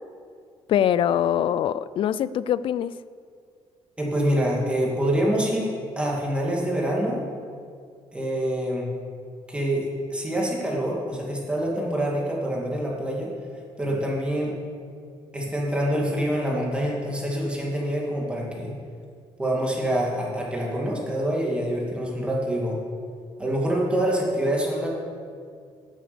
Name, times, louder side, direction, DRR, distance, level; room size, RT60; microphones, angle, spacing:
voice 1, 0.7-3.0, left 10 dB, 60° left, 17 dB, 0.4 m, -23 dB
voice 2, 4.0-7.2 8.1-8.9 9.5-13.3 13.8-14.6 15.3-18.8 19.4-22.8 23.4-24.9, right 1 dB, 10° right, -3 dB, 2.2 m, -26 dB
10.0 x 8.5 x 6.9 m, 2.2 s
cardioid pair, 135°, 10 cm